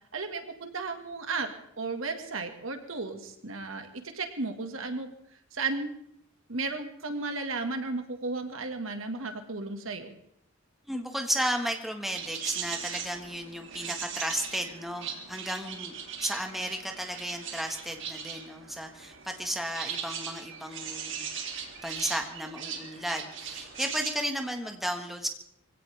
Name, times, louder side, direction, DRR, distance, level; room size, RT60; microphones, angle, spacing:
voice 1, 0.1-1.5 1.8-5.1 5.5-5.9 6.5-10.2, right 3 dB, 80° right, 6 dB, 1.9 m, -34 dB
voice 2, 10.8-15.9 16.2-21.3 21.5-25.3, equal, ahead, 3 dB, 1.6 m, -34 dB
sound 1, 12.1-24.1, right 7 dB, 65° right, 2.7 m, -39 dB
23.0 x 16.5 x 3.5 m, 0.73 s
head